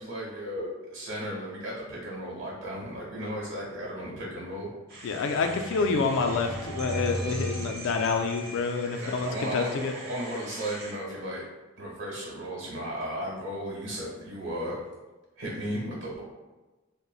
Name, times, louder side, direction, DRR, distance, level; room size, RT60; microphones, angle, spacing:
voice 1, 0.0-4.7 9.0-11.4 11.8-14.8 15.4-16.2, equal, 70° right, -4 dB, 1.2 m, -35 dB
sound 1, 4.7-8.7, right 1 dB, 20° right, 1.0 m, -37 dB
sound 2, 4.9-10.9, right 1 dB, 50° right, 0.8 m, -43 dB
voice 2, 5.0-9.9, left 4 dB, 65° left, 6 dB, 0.3 m, -28 dB
3.8 x 2.1 x 2.3 m, 1.2 s
head